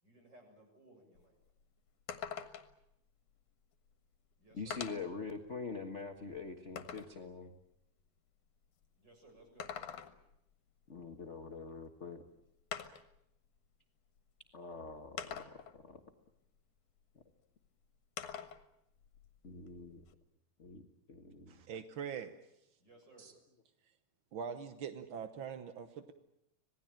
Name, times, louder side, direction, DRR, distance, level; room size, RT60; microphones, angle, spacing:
voice 1, 0.0-1.4 4.4-4.8 9.0-9.7 22.8-23.3, right 2 dB, 30° right, 2 dB, 7.7 m, -61 dB
sound 1, 1.2-1.3 1.6-1.7 2.1-2.8 3.9-4.0 4.7-5.2 5.8-7.2 9.4-10.4 11.9-12.0 12.7-13.2 14.2-14.3 15.2-15.8 18.2-18.6 19.0-20.1, left 8 dB, 70° left, 2.8 m, -45 dB
voice 2, 4.5-7.5 10.9-12.2 14.5-15.4 15.7-16.0 19.4-20.0 20.6-20.8 21.1-21.6 23.2-23.3, left 4 dB, 45° left, 5 dB, 0.9 m, -44 dB
voice 3, 21.5-22.3 24.3-26.1, right 7 dB, 65° right, 9 dB, 1.3 m, -43 dB
26.5 x 19.0 x 9.0 m, 0.82 s
omnidirectional pair, 3.7 m